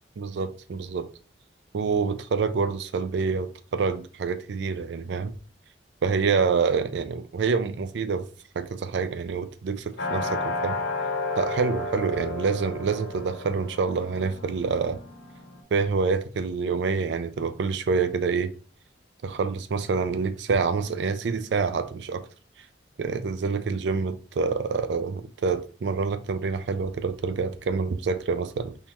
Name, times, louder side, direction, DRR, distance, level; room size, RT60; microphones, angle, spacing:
voice 1, 0.2-1.1 1.7-5.3 6.0-8.3 8.6-10.8 11.4-15.0 15.7-18.5 19.2-22.3 23.0-28.8, right 5 dB, 70° right, 0.4 m, -27 dB
sound 1, 10.0-15.6, left 2 dB, 85° left, 1.2 m, -32 dB
3.7 x 2.9 x 4.3 m
head